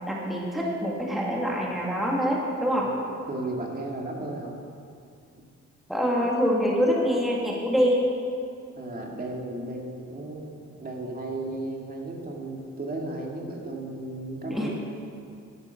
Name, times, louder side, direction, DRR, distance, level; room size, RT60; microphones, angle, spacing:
voice 1, 0.1-2.9 5.9-8.0 14.5-14.7, equal, ahead, -3 dB, 2.0 m, -25 dB
voice 2, 3.3-4.6 8.8-14.7, right 2 dB, 30° right, -1 dB, 2.3 m, -34 dB
12.5 x 9.7 x 5.9 m, 2.4 s
cardioid pair, 90°, 30 cm